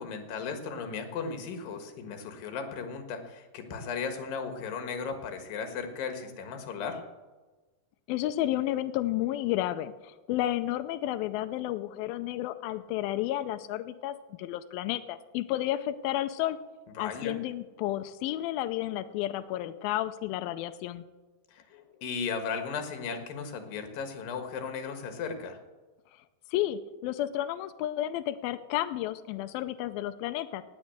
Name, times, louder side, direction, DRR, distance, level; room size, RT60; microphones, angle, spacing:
voice 1, 0.0-7.0 17.0-17.4 21.5-25.6, left 5 dB, 65° left, 6 dB, 3.0 m, -36 dB
voice 2, 8.1-16.6 17.0-21.0 26.5-30.6, left 14 dB, 90° left, 10 dB, 2.1 m, -31 dB
18.5 x 6.3 x 7.9 m, 1.2 s
omnidirectional pair, 4.9 m